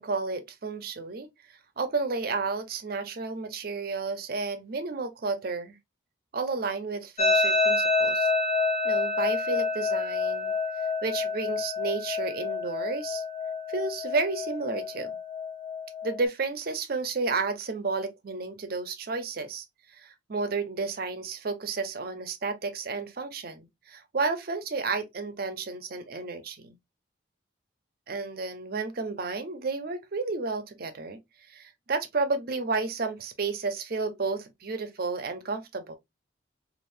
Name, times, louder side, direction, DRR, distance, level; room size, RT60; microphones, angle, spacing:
voice 1, 0.0-5.8 6.3-8.3 8.8-10.5 11.0-13.2 13.7-15.2 16.0-26.8 28.1-31.2 31.5-36.0, right 4 dB, 50° right, 0.6 m, -32 dB
sound 1, 7.2-16.2, left 3 dB, 35° left, 0.6 m, -28 dB
3.4 x 2.5 x 2.5 m
head